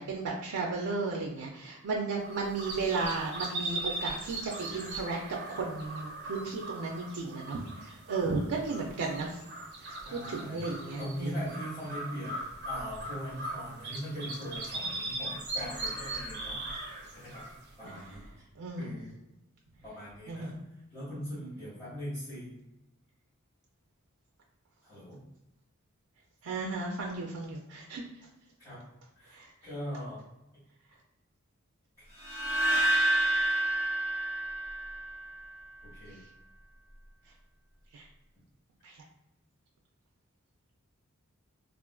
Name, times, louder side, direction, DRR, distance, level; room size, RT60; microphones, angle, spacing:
voice 1, 0.0-5.2 5.5-9.4 9.8-11.4 18.6-19.0 20.3-20.6 26.4-28.0 29.3-29.5 37.9-38.0 38.8-38.9, right 3 dB, 90° right, 0 dB, 0.4 m, -34 dB
sound 1, 2.2-18.3, right 2 dB, 55° right, 0.9 m, -39 dB
voice 2, 10.1-12.4 12.6-16.6 17.1-17.4 17.8-18.4 18.8-19.2 19.8-20.5 20.9-22.5 24.8-25.2 28.6-28.8 29.1-29.4 29.6-30.2 32.0-32.1 35.9-36.2, equal, 15° left, -15 dB, 1.4 m, -40 dB
sound 2, 32.2-35.4, right 1 dB, 15° right, 1.2 m, -28 dB
3.6 x 2.4 x 2.2 m, 0.95 s
head